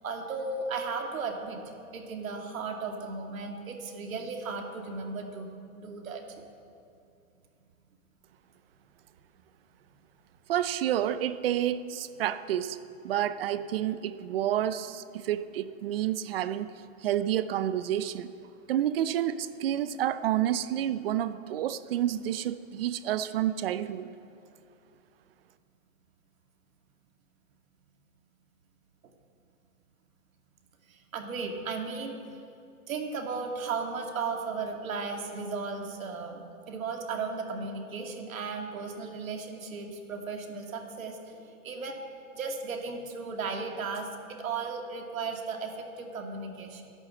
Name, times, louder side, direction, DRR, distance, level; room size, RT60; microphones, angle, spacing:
voice 1, 0.0-1.6 1.9-5.5 5.8-6.2 30.9-32.3 32.9-42.0 42.3-46.8, right 4 dB, 70° right, 3 dB, 2.5 m, -35 dB
voice 2, 10.5-12.8 13.0-16.7 17.0-18.3 18.7-24.1, right 11 dB, 45° right, 14 dB, 0.7 m, -29 dB
14.0 x 11.0 x 7.7 m, 2.5 s
hypercardioid pair, 150°, 42 cm